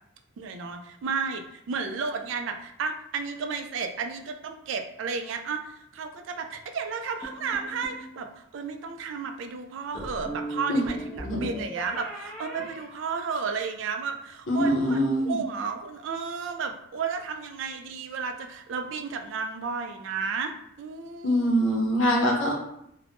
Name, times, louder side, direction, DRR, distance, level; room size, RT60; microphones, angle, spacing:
voice 1, 0.4-21.5, right 5 dB, 70° right, 6 dB, 0.3 m, -33 dB
sound 1, 7.2-8.1 10.0-13.7, right 1 dB, 5° left, 0.6 m, -39 dB
voice 2, 14.5-15.4 21.2-22.5, equal, 75° left, 0 dB, 0.6 m, -23 dB
2.5 x 2.0 x 3.3 m, 0.77 s
head